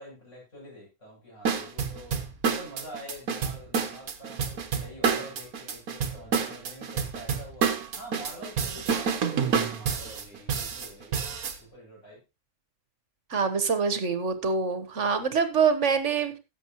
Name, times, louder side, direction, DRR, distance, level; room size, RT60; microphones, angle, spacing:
voice 1, 0.0-2.2 2.4-11.2 11.6-12.2, equal, 60° left, -6 dB, 7.9 m, -46 dB
sound 1, 1.4-11.6, right 6 dB, 85° right, 1.7 m, -28 dB
voice 2, 13.3-16.3, right 5 dB, 55° right, 10 dB, 1.6 m, -25 dB
16.5 x 7.1 x 3.0 m, 0.26 s
omnidirectional pair, 1.5 m